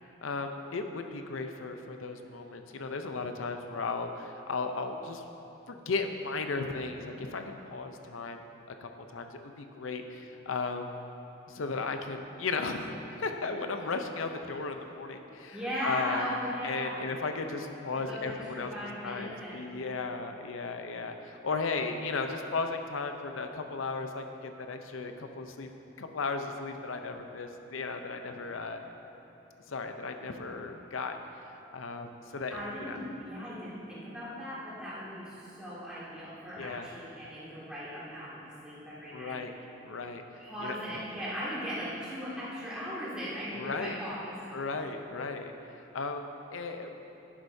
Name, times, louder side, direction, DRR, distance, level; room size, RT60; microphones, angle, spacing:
voice 1, 0.2-5.2 5.7-7.4 7.7-8.4 8.8-10.9 11.5-16.2 16.6-18.7 19.0-25.7 26.0-28.8 29.7-31.2 31.7-33.0 36.6-36.9 39.1-39.5 39.9-40.2 40.6-41.0 43.5-44.0 44.5-46.9, left 4 dB, 90° left, 6 dB, 0.6 m, -35 dB
voice 2, 15.5-17.0 17.9-19.8 32.5-39.4 40.4-44.3, equal, 5° right, -11 dB, 2.1 m, -38 dB
11.0 x 9.7 x 2.7 m, 3.0 s
head